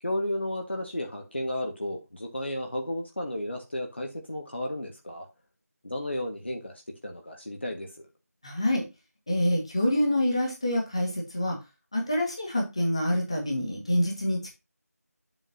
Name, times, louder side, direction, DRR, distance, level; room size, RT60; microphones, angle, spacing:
voice 1, 0.0-5.3 5.8-8.1, left 1 dB, 40° left, 1.4 m, -33 dB
voice 2, 8.4-8.8 9.3-11.6 11.9-14.5, left 1 dB, 20° left, 1.7 m, -26 dB
7.8 x 7.3 x 2.7 m
figure-of-eight pair, 170°, 9 cm